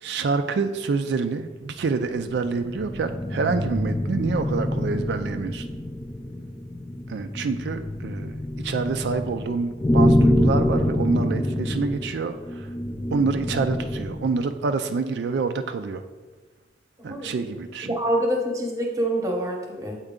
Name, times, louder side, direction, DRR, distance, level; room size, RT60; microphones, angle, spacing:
voice 1, 0.0-5.7 7.1-8.4 8.6-12.7 13.1-16.0 17.0-18.0, right 4 dB, 75° right, 7 dB, 0.4 m, -27 dB
sound 1, 1.8-14.4, left 1 dB, 15° left, 0.4 m, -26 dB
voice 2, 17.0-17.3 17.9-20.0, right 1 dB, 20° right, 1 dB, 0.9 m, -26 dB
7.8 x 4.4 x 3.7 m, 1.3 s
head